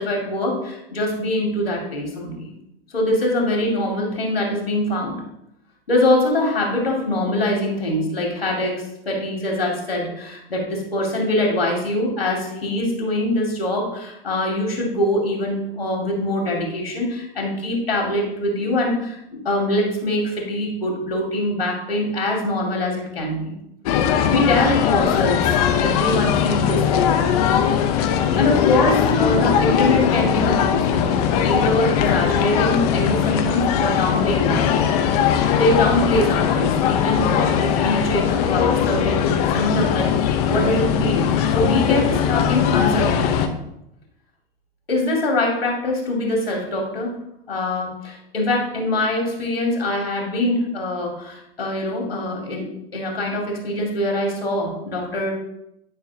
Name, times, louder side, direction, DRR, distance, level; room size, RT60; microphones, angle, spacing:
voice 1, 0.0-2.5 2.9-5.2 5.9-23.5 24.0-27.1 28.3-31.1 31.4-34.7 35.5-41.3 41.5-43.5 44.9-47.1 47.5-55.3, left 1 dB, 75° left, 0 dB, 2.4 m, -23 dB
sound 1, 23.9-43.5, left 8 dB, 40° left, 0.7 m, -20 dB
10.5 x 5.6 x 2.8 m, 0.83 s
figure-of-eight pair, 100°, 30 cm